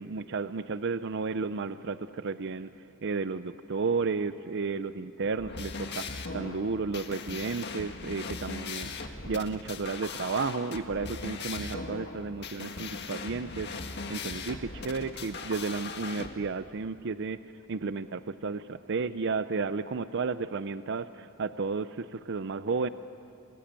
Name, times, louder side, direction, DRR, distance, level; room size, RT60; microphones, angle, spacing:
voice 1, 0.0-22.9, right 4 dB, 55° right, 13 dB, 0.5 m, -33 dB
sound 1, 5.3-16.3, left 4 dB, 50° left, 1.7 m, -39 dB
27.5 x 21.0 x 8.8 m, 2.7 s
head